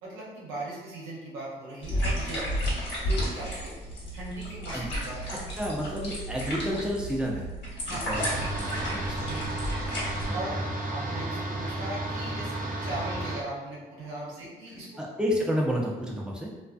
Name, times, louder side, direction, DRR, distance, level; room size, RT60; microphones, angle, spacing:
voice 1, 0.0-2.5 3.0-3.7 4.1-5.4 7.8-8.1 9.2-9.6 10.3-10.6 10.9-15.0, right 1 dB, 90° right, -5 dB, 0.7 m, -38 dB
sound 1, 1.8-10.3, equal, 65° left, 1.0 m, -32 dB
voice 2, 5.3-7.5 8.1-9.3 10.2-10.6 15.0-16.5, equal, 5° right, -2 dB, 0.6 m, -31 dB
sound 2, 8.1-13.4, right 1 dB, 45° right, 0.6 m, -33 dB
2.4 x 2.3 x 2.3 m, 1.2 s
supercardioid pair, 50°, 19 cm